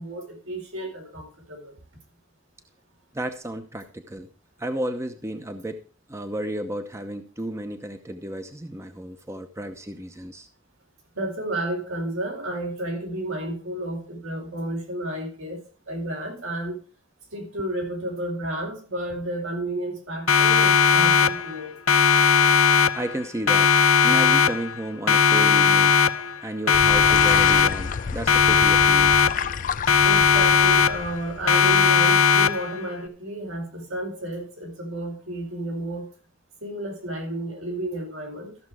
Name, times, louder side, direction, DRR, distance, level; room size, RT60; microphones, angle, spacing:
voice 1, 0.0-1.7 11.1-16.8 17.3-21.8 30.0-36.1 36.6-38.6, right 1 dB, 80° right, 4.4 m, -32 dB
voice 2, 3.1-4.3 4.6-5.8 6.1-10.5 22.9-23.7 24.0-26.0 26.4-29.2, right 1 dB, 15° right, 0.8 m, -32 dB
Siren, 20.3-21.6 21.9-23.2 23.5-24.8 25.1-26.4 26.7-28.0 28.3-29.6 29.9-31.2 31.5-32.8, left 6 dB, 85° left, 0.6 m, -18 dB
sound 1, 26.7-32.0, left 6 dB, 40° left, 0.4 m, -32 dB
14.0 x 6.7 x 4.8 m
head